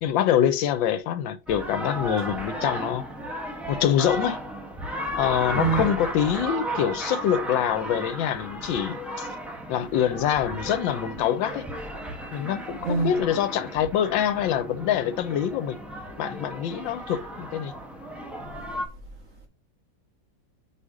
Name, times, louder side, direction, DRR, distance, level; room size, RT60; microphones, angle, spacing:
voice 1, 0.0-3.1 3.7-4.4 5.2-9.3 9.7-11.6 12.3-15.8 16.2-17.7, left 10 dB, 85° left, 1.4 m, -25 dB
sound 1, 1.5-18.8, equal, ahead, 0.8 m, -34 dB
voice 2, 5.6-6.0 12.8-13.2, right 5 dB, 40° right, 2.2 m, -25 dB
5.1 x 4.2 x 4.8 m
omnidirectional pair, 2.1 m